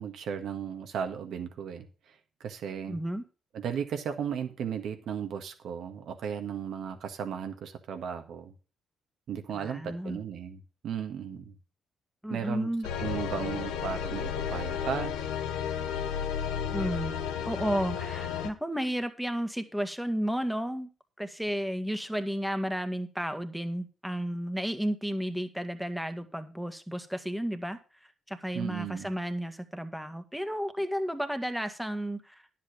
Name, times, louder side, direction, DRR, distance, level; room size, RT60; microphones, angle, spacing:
voice 1, 0.0-1.9 2.4-3.0 3.5-8.5 9.3-11.5 12.3-12.7 13.0-15.2 28.5-29.1, right 8 dB, 70° right, 6 dB, 1.6 m, -35 dB
voice 2, 2.9-3.2 9.5-10.2 12.2-12.9 16.7-17.1 17.5-20.9 21.2-27.8 28.3-32.4, equal, ahead, 8 dB, 1.7 m, -32 dB
sound 1, 12.8-18.5, left 8 dB, 90° left, 0.9 m, -33 dB
10.5 x 7.6 x 5.2 m, 0.35 s
supercardioid pair, 55°, 0 cm